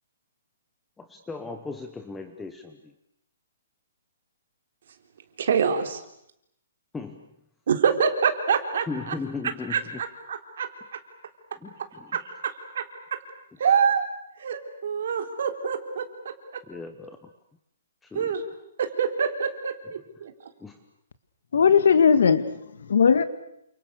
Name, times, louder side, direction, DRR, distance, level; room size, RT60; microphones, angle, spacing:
voice 1, 1.0-2.9 6.9-7.3 8.9-10.0 11.6-12.2 16.7-17.3 18.0-18.3 20.2-20.3 20.6-20.8, left 4 dB, 5° left, 7 dB, 1.1 m, -37 dB
voice 2, 5.4-6.0 7.7-9.1 9.7-11.0 12.1-13.2 13.6-14.1 14.4-16.6 18.1-18.4 18.8-20.3, right 6 dB, 50° right, 6 dB, 3.7 m, -26 dB
voice 3, 21.5-23.2, left 6 dB, 65° left, 13 dB, 2.0 m, -19 dB
29.5 x 27.5 x 6.7 m, 0.76 s
hypercardioid pair, 180°, 0 cm